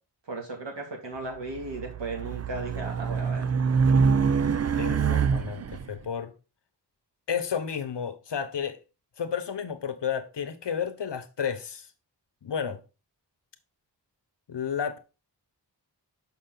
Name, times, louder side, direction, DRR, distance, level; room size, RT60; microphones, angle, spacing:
voice 1, 0.3-3.4, right 2 dB, 85° right, 2.5 m, -36 dB
Race car auto racing, 1.5-5.8, right 6 dB, 40° right, 0.5 m, -25 dB
voice 2, 4.8-6.3 7.3-8.8 9.2-11.9 12.4-12.8 14.5-15.0, left 7 dB, 75° left, 1.0 m, -32 dB
6.7 x 5.4 x 3.9 m
wide cardioid pair, 80°, 42 cm